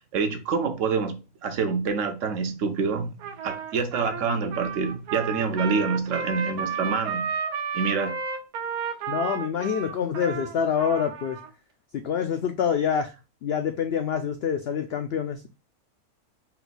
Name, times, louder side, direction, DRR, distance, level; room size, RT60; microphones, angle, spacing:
voice 1, 0.0-3.1 3.4-7.4 7.7-8.2, right 5 dB, 65° right, 0.9 m, -27 dB
Trumpet, 3.2-11.5, right 6 dB, 90° right, 1.3 m, -32 dB
voice 2, 9.1-11.4 12.0-13.1 13.4-15.5, left 7 dB, 75° left, 0.5 m, -26 dB
4.4 x 2.2 x 3.9 m
omnidirectional pair, 1.6 m